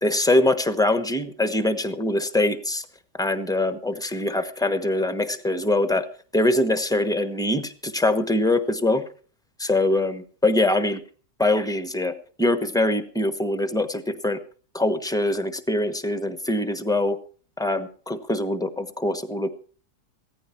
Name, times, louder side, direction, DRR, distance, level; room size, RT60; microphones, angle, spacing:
voice 1, 0.0-2.8 3.2-6.1 6.3-9.0 9.6-11.0 11.4-12.1 12.4-14.4 14.7-17.2 17.6-19.5, left 2 dB, 5° left, 10 dB, 0.8 m, -23 dB
16.0 x 14.5 x 4.4 m, 0.41 s
omnidirectional pair, 1.7 m